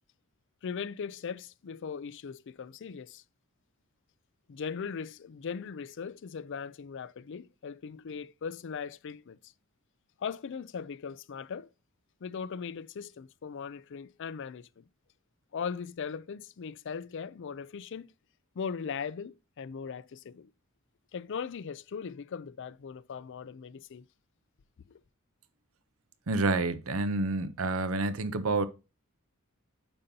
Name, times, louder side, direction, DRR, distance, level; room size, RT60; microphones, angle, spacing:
voice 1, 0.6-3.2 4.5-9.5 10.2-11.7 12.2-14.8 15.5-18.1 18.6-20.5 21.1-24.0 24.9-25.0, left 6 dB, 60° left, 0.4 m, -39 dB
voice 2, 26.3-28.7, right 3 dB, 75° right, 0.8 m, -28 dB
8.8 x 5.3 x 2.8 m
head